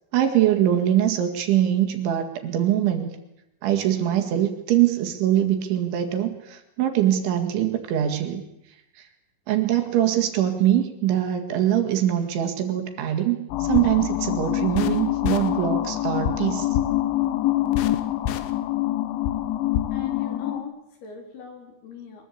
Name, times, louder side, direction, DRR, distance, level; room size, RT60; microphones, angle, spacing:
voice 1, 0.1-3.1 3.6-8.4 9.5-16.7, right 11 dB, 70° right, 5 dB, 4.3 m, -23 dB
sound 1, 13.5-20.6, left 13 dB, 75° left, 3.6 m, -25 dB
voice 2, 19.9-22.3, left 8 dB, 55° left, 4 dB, 5.4 m, -39 dB
23.5 x 22.0 x 8.5 m, 0.86 s
omnidirectional pair, 5.7 m